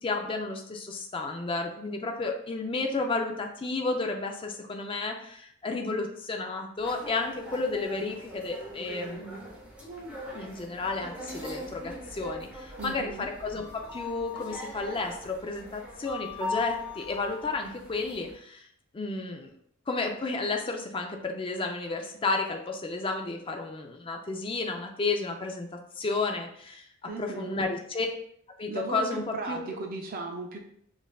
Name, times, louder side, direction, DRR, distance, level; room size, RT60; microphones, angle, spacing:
voice 1, 0.0-9.4 10.3-18.7 18.9-19.5 19.9-28.1 28.6-29.7, left 3 dB, 25° left, 3 dB, 0.4 m, -32 dB
sound 1, 6.8-18.3, left 2 dB, 5° right, 0.7 m, -41 dB
voice 2, 12.8-13.3 27.1-27.6 28.7-30.6, right 3 dB, 40° right, 2 dB, 0.4 m, -36 dB
5.2 x 2.5 x 2.3 m, 0.67 s
head